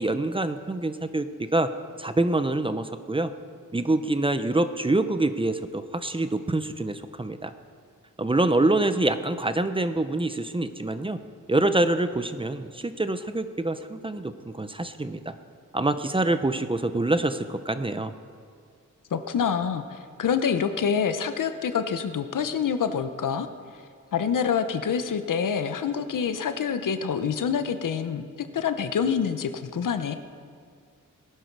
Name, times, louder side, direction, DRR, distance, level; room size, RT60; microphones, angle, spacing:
voice 1, 0.0-1.7 2.0-3.3 3.7-7.5 8.2-11.2 11.5-15.3 15.7-18.1, right 2 dB, 15° right, 10 dB, 0.6 m, -26 dB
voice 2, 19.1-23.5 24.1-30.2, left 7 dB, 80° left, 9 dB, 0.9 m, -26 dB
19.0 x 11.5 x 4.7 m, 2.1 s
wide cardioid pair, 110°, 32 cm